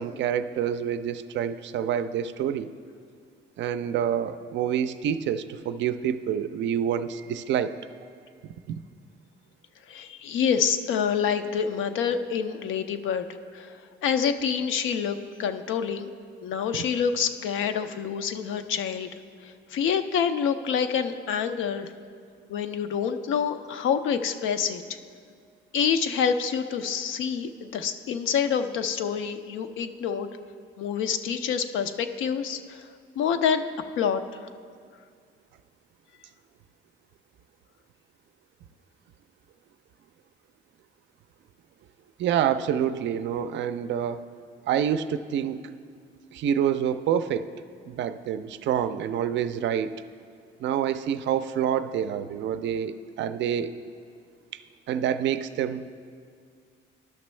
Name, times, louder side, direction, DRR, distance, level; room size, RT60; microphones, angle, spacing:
voice 1, 0.0-2.7 3.6-7.8 8.7-8.8 42.2-44.3 44.7-45.6 46.3-47.5 47.8-49.9 50.6-53.7 54.5-54.6 54.9-55.8, right 9 dB, 65° right, 11 dB, 0.4 m, -27 dB
voice 2, 9.9-13.2 13.5-16.1 16.4-19.1 19.4-21.9 22.5-24.8 25.7-30.3 30.8-32.9 33.2-33.7 34.0-34.5, left 7 dB, 80° left, 8 dB, 0.5 m, -27 dB
12.0 x 6.0 x 3.2 m, 2.1 s
cardioid pair, 90°, 20 cm